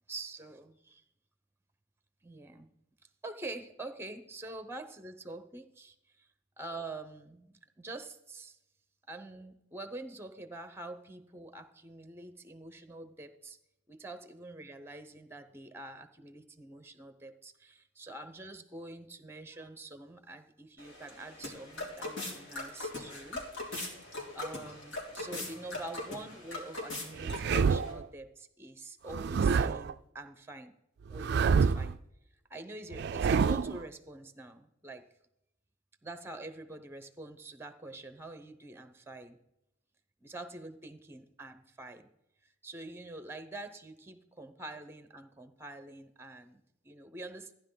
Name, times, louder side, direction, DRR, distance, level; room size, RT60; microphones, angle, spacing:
voice 1, 0.1-1.0 2.2-2.7 3.2-6.3 6.6-8.6 9.1-13.6 13.9-23.4 24.3-30.7 31.1-32.0 32.5-35.0 36.0-39.4 40.2-42.1 42.4-47.5, right 2 dB, 10° right, 10 dB, 0.8 m, -46 dB
sound 1, 20.8-27.9, left 2 dB, 65° left, 3.2 m, -41 dB
sound 2, 27.2-28.0 29.1-29.9 31.1-32.0 32.9-33.8, right 5 dB, 55° right, 0.4 m, -27 dB
14.5 x 10.5 x 3.9 m, 0.84 s
head